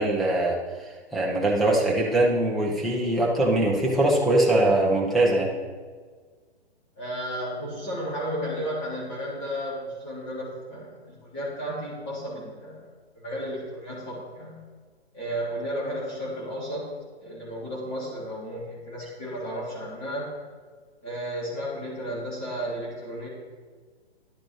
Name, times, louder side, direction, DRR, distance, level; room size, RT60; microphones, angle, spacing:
voice 1, 0.0-5.5, right 1 dB, ahead, -5 dB, 1.1 m, -22 dB
voice 2, 7.0-12.8 13.1-14.6 15.1-16.9 17.2-20.3 21.0-23.3, equal, 25° left, -7 dB, 3.2 m, -33 dB
12.0 x 11.0 x 3.4 m, 1.5 s
figure-of-eight pair, 135°, 33 cm